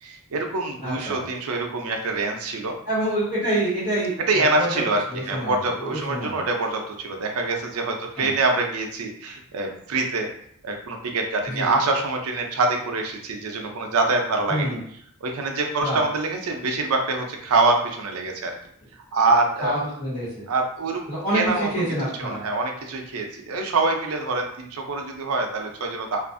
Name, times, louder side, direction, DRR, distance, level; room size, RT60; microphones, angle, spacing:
voice 1, 0.0-2.7 4.3-10.3 10.6-14.7 15.2-18.5 19.1-19.8 20.5-21.0 21.3-21.7 22.2-26.2, right 3 dB, 90° right, 3 dB, 0.5 m, -25 dB
voice 2, 0.8-1.2 2.9-4.8 5.1-6.4 8.2-8.3 11.5-11.7 14.5-14.8 15.8-16.0 19.6-20.5 21.1-22.4, right 1 dB, 50° left, -11 dB, 1.2 m, -27 dB
2.5 x 2.4 x 2.5 m, 0.65 s
head